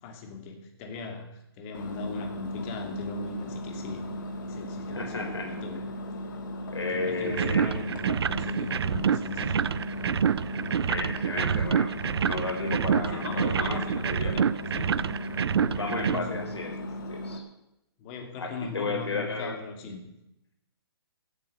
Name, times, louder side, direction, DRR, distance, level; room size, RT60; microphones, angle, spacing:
voice 1, 0.0-4.0 4.4-5.9 6.6-9.6 13.0-14.9 15.5-16.4 18.0-20.0, left 3 dB, 25° left, 4 dB, 2.7 m, -39 dB
Engine, 1.7-17.4, left 1 dB, 50° left, 2.5 m, -37 dB
voice 2, 4.9-5.5 6.7-7.7 10.8-11.9 12.2-14.4 15.7-17.4 18.4-19.6, left 3 dB, 85° left, 2 dB, 4.2 m, -33 dB
sound 1, 7.3-16.2, right 7 dB, 70° right, 0.5 m, -27 dB
15.5 x 8.5 x 8.0 m, 0.86 s
hypercardioid pair, 150°, 14 cm